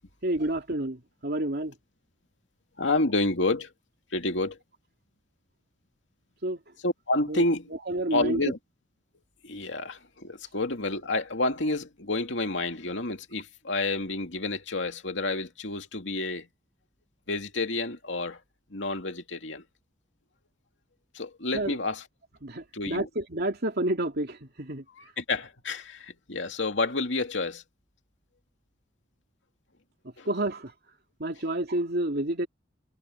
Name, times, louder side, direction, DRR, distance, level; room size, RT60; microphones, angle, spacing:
voice 1, 0.2-1.7 6.4-6.6 7.3-7.4 7.9-8.4 21.5-21.7 22.4-24.8 30.3-30.7 31.2-32.5, right 1 dB, 60° right, 2.8 m, -29 dB
voice 2, 2.8-3.7 4.1-4.6 6.8-7.7 8.1-8.6 9.4-16.5 17.3-18.4 18.7-19.6 21.1-22.1 22.7-23.1 25.0-27.6 30.2-30.3, left 2 dB, 75° left, 2.7 m, -29 dB
head